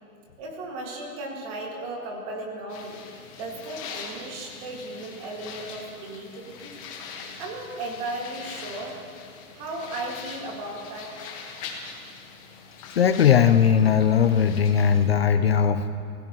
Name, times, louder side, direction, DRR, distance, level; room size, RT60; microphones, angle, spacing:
voice 1, 0.4-3.0 3.4-6.7 7.4-9.0 9.5-11.2, right 2 dB, 25° right, 0 dB, 2.0 m, -35 dB
sound 1, 2.7-15.1, left 5 dB, 25° left, 1.4 m, -42 dB
voice 2, 13.0-15.8, left 8 dB, 45° left, 9 dB, 0.5 m, -19 dB
28.0 x 16.5 x 3.0 m, 2.5 s
hypercardioid pair, 170°, 43 cm